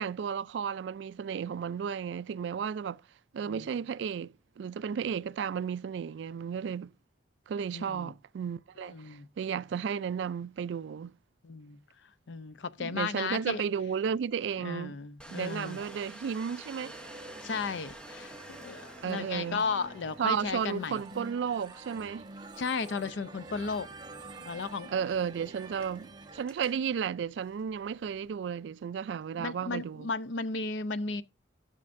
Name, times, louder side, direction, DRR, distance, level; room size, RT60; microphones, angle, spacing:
voice 1, 0.0-3.0 3.3-6.9 7.5-11.1 12.8-15.0 15.3-17.0 19.0-19.7 20.2-22.3 24.9-30.1, right 7 dB, 65° right, 0.3 m, -33 dB
voice 2, 7.7-8.1 8.8-9.3 11.4-11.8 12.3-13.6 14.6-15.8 17.4-21.0 22.6-23.9 24.4-24.9 29.4-31.2, left 4 dB, 70° left, 0.6 m, -35 dB
Domestic sounds home sounds, 15.2-28.3, right 1 dB, 5° left, 0.8 m, -52 dB
sound 1, 16.8-26.4, right 3 dB, 20° right, 0.9 m, -48 dB
12.0 x 6.5 x 2.5 m
head